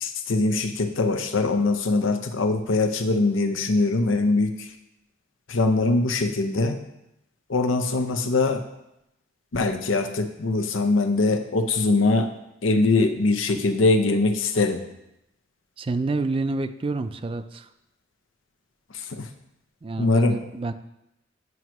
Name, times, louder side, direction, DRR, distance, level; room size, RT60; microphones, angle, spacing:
voice 1, 0.0-4.7 5.5-6.8 7.5-8.6 9.5-12.3 12.6-14.8 18.9-19.3 20.0-20.4, left 3 dB, 85° left, 7 dB, 0.7 m, -22 dB
voice 2, 15.8-17.7 19.8-20.7, right 3 dB, 30° right, 11 dB, 0.3 m, -28 dB
9.3 x 6.1 x 3.0 m, 0.87 s
head